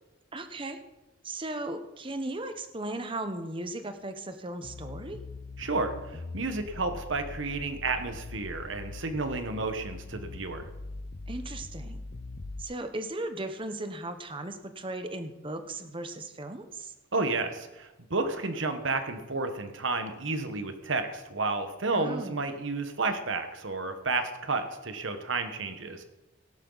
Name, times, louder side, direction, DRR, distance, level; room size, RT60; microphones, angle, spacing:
voice 1, 0.3-0.8 1.2-5.2 11.3-12.0 12.6-16.9 21.9-22.4, right 2 dB, 25° right, 8 dB, 1.0 m, -37 dB
sound 1, 4.6-12.6, left 3 dB, 50° left, 0.6 m, -42 dB
voice 2, 5.6-5.9 6.3-10.6 17.1-26.0, right 3 dB, 70° right, 8 dB, 1.3 m, -31 dB
17.5 x 11.0 x 4.1 m, 1.1 s
head